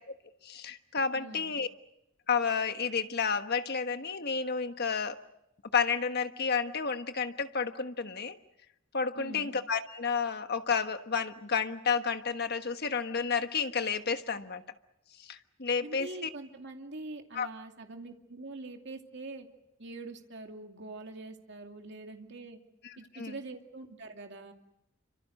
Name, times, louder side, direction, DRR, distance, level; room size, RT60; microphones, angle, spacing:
voice 1, 0.4-1.7 2.3-5.2 5.7-8.4 8.9-14.6 15.2-16.3 17.3-17.5 23.1-23.3, left 5 dB, 55° left, 9 dB, 1.4 m, -31 dB
voice 2, 1.1-1.6 9.1-9.6 15.8-19.5 19.8-22.6 23.0-24.5, right 2 dB, 60° right, 3 dB, 2.6 m, -44 dB
29.0 x 25.5 x 6.6 m, 0.84 s
head